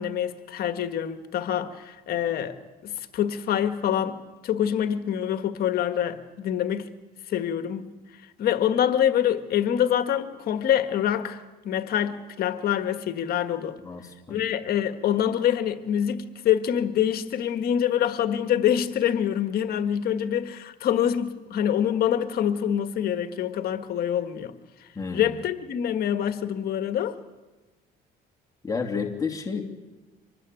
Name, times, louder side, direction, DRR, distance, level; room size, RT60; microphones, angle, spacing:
voice 1, 0.0-6.9 7.3-7.9 8.4-13.8 14.3-24.5 25.1-27.2, left 10 dB, 65° left, 1.6 m, -25 dB
voice 2, 13.8-14.4 24.9-25.3 28.6-29.6, left 5 dB, 20° left, 2.8 m, -31 dB
25.0 x 20.0 x 9.2 m
cardioid pair, 110°, 17 cm